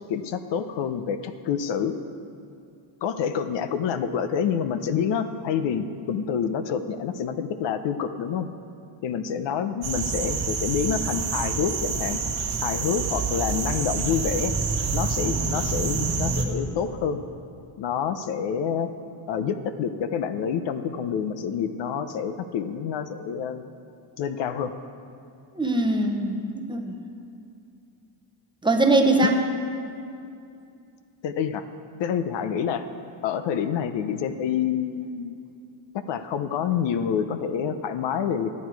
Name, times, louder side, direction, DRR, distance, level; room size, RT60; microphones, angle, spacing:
voice 1, 0.1-2.0 3.0-8.5 9.0-12.2 12.6-14.5 14.9-17.2 17.8-18.9 19.3-23.7 24.2-24.7 29.2-29.6 31.2-31.6 32.0-32.9 33.2-35.4 36.1-38.6, left 7 dB, 70° left, 10 dB, 0.7 m, -27 dB
sound 1, 9.8-16.4, right 4 dB, 60° right, 1.4 m, -27 dB
voice 2, 25.6-27.0 28.6-29.3, right 2 dB, 10° right, 2 dB, 0.8 m, -22 dB
12.0 x 9.5 x 4.6 m, 2.5 s
cardioid pair, 125°, 45 cm